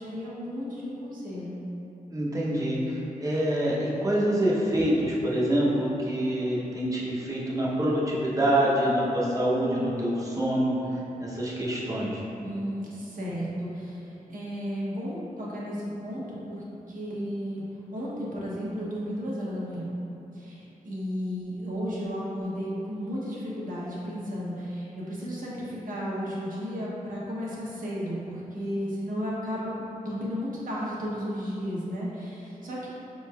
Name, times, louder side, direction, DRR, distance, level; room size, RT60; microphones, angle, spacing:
voice 1, 0.0-1.6 12.4-17.6 17.9-19.9 20.3-32.9, equal, 65° right, -7 dB, 0.8 m, -33 dB
voice 2, 2.1-10.8 11.2-12.2, right 1 dB, 25° right, -5 dB, 0.7 m, -26 dB
4.5 x 3.1 x 2.3 m, 2.9 s
wide cardioid pair, 90°, 15 cm